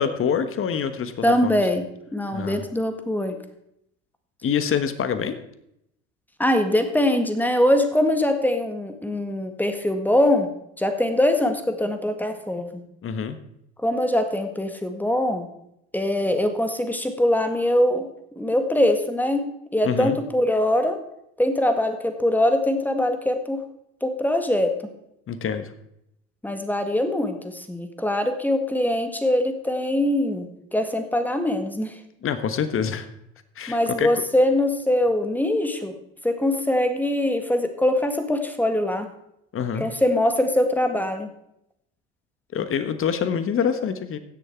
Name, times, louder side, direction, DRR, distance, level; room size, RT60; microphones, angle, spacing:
voice 1, 0.0-1.6 2.3-2.7 4.4-5.4 13.0-13.4 19.8-20.2 25.3-25.7 32.2-33.1 33.5-34.2 39.5-39.9 42.5-44.2, left 7 dB, 40° left, 11 dB, 1.3 m, -26 dB
voice 2, 1.2-1.8 2.1-3.4 6.4-10.5 10.8-12.7 13.8-15.5 15.9-18.1 18.4-19.4 19.7-21.0 21.4-23.6 24.0-24.7 26.4-32.0 33.7-35.9 36.2-39.1 39.8-41.3, left 1 dB, 5° left, 7 dB, 1.8 m, -22 dB
16.5 x 6.6 x 4.6 m, 0.77 s
hypercardioid pair, 75°, 33 cm